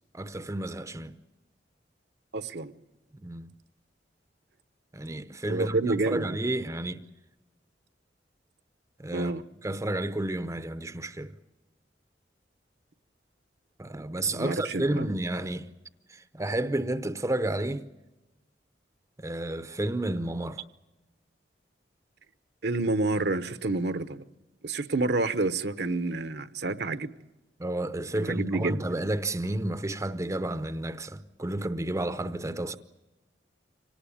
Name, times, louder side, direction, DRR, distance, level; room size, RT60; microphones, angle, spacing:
voice 1, 0.1-1.1 3.1-3.5 4.9-7.1 9.0-9.3 9.6-11.3 13.8-15.7 16.1-17.9 19.2-20.6 27.6-32.8, right 1 dB, 15° right, 0.7 m, -31 dB
voice 2, 2.3-2.7 5.5-6.4 9.1-9.4 14.3-15.1 22.6-24.2 24.6-27.1 28.1-28.8, right 2 dB, 65° right, 0.9 m, -29 dB
25.5 x 18.5 x 8.6 m
head